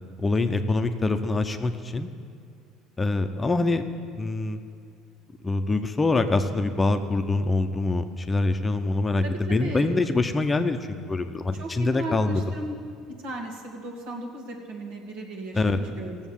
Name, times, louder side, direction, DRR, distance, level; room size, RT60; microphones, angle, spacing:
voice 1, 0.2-2.1 3.0-4.6 5.4-10.8 11.1-12.4 15.5-15.8, left 2 dB, 20° left, 7 dB, 0.7 m, -25 dB
voice 2, 9.2-9.9 11.6-12.7 13.2-16.2, right 1 dB, 80° right, 0 dB, 2.2 m, -36 dB
16.0 x 7.3 x 7.2 m, 2.4 s
cardioid pair, 115°, 0 cm